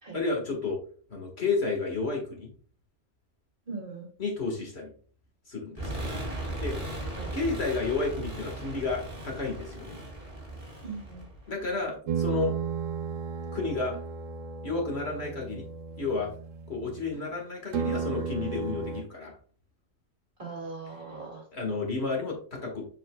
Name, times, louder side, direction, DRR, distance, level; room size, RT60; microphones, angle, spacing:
voice 1, 0.1-0.8 1.1-2.5 4.2-4.9 5.5-5.9 6.5-6.8 7.3-10.0 11.5-12.5 13.5-14.0 14.6-15.7 16.0-16.3 16.7-19.4 21.5-22.9, left 3 dB, 55° left, 0 dB, 2.0 m, -31 dB
voice 2, 3.7-4.1 7.2-7.3 10.8-11.3 20.4-21.4, right 4 dB, 45° right, -1 dB, 2.3 m, -39 dB
sound 1, 5.8-11.9, right 1 dB, 30° right, 2.6 m, -37 dB
sound 2, 12.1-17.3 17.7-19.0, right 6 dB, 85° right, 1.1 m, -34 dB
7.3 x 5.7 x 2.3 m, 0.43 s
omnidirectional pair, 1.3 m